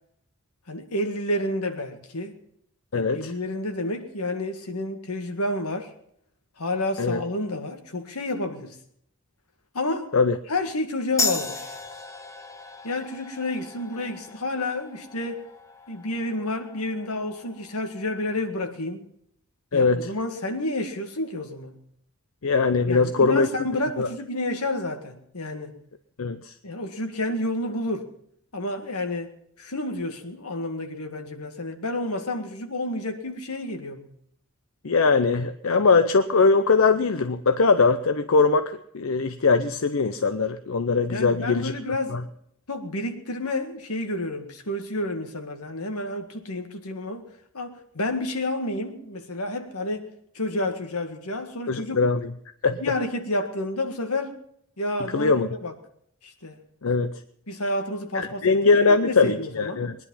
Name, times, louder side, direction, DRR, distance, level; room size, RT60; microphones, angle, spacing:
voice 1, 0.7-2.4 2.9-5.9 6.6-8.8 9.7-10.2 10.5-11.8 12.8-15.4 15.9-19.1 19.7-21.7 22.9-25.7 26.6-28.1 28.5-34.1 41.1-42.2 42.7-47.2 47.5-52.0 52.8-54.4 54.8-55.7 56.2-56.6 57.5-59.9, left 1 dB, 90° left, 1.9 m, -30 dB
voice 2, 2.9-3.3 7.0-7.2 10.1-10.4 19.7-20.1 22.4-23.5 24.0-24.1 26.2-26.5 34.8-41.7 42.1-42.2 51.7-52.2 52.6-52.8 55.1-55.5 56.8-57.2 58.1-60.0, left 4 dB, 70° left, 0.6 m, -21 dB
sound 1, 11.2-18.3, left 3 dB, 15° left, 1.1 m, -35 dB
21.0 x 10.5 x 5.6 m
head